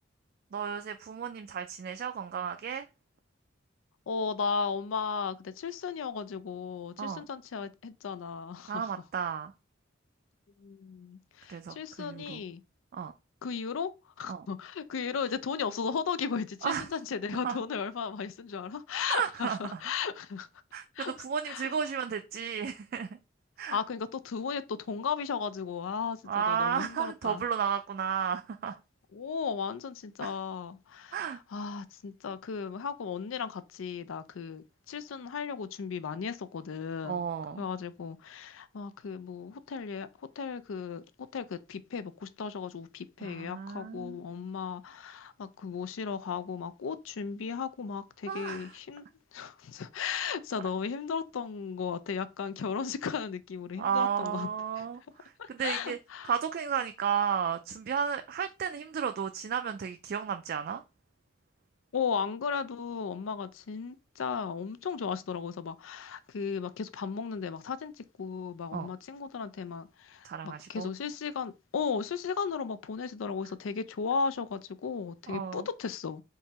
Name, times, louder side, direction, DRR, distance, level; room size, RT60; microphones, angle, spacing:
voice 1, 0.5-2.9 7.0-7.3 8.7-9.5 11.5-12.4 12.9-13.1 14.3-14.5 16.6-16.9 17.4-17.6 19.1-19.8 20.7-23.2 23.6-23.8 26.3-28.8 30.2-30.3 31.1-31.4 37.0-37.6 43.2-44.2 48.3-48.7 53.8-56.0 56.2-60.8 68.7-68.9 70.2-70.9 75.3-75.7, right 7 dB, 50° right, 0.3 m, -33 dB
voice 2, 4.1-8.9 10.6-12.6 13.4-13.9 14.2-20.5 21.0-21.1 21.5-21.7 23.7-27.4 29.1-37.2 37.6-40.1 40.4-41.0 41.3-49.0 49.3-54.5 54.8-54.9 55.4-56.3 61.9-76.2, left 6 dB, 90° left, 0.4 m, -35 dB
3.6 x 2.8 x 4.1 m
head